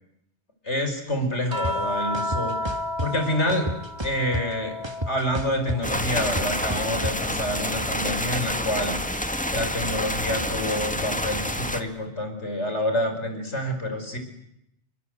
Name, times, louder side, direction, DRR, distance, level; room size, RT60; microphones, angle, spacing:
voice 1, 0.6-3.7 4.0-9.0 9.5-14.2, left 1 dB, 90° left, 6 dB, 5.5 m, -28 dB
sound 1, 1.5-6.0 6.3-8.0 9.5-9.7, left 1 dB, 70° right, 3.0 m, -33 dB
sound 2, 1.6-1.7 2.1-3.1 3.5-4.6 4.8-7.1, right 1 dB, 25° right, 2.0 m, -31 dB
sound 3, 5.8-11.8, equal, 5° left, 1.7 m, -28 dB
29.0 x 23.5 x 8.2 m, 0.80 s
omnidirectional pair, 1.1 m